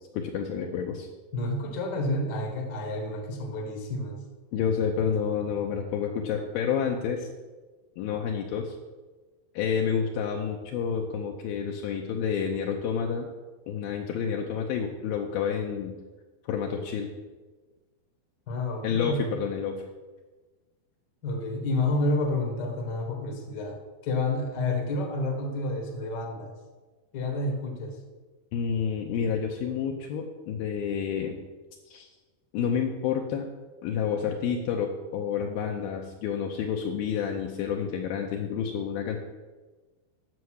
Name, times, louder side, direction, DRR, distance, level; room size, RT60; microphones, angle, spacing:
voice 1, 0.1-1.1 4.5-7.3 8.0-8.8 9.5-13.3 13.7-16.0 16.5-17.1 18.8-19.8 28.5-31.4 31.9-32.1 32.5-33.5 33.8-39.2, left 7 dB, 80° left, 1 dB, 2.4 m, -29 dB
voice 2, 1.3-4.2 18.5-19.2 21.2-23.8 24.0-26.5 27.1-28.0, left 2 dB, 55° left, 2 dB, 1.2 m, -29 dB
9.4 x 6.8 x 6.3 m, 1.3 s
omnidirectional pair, 4.8 m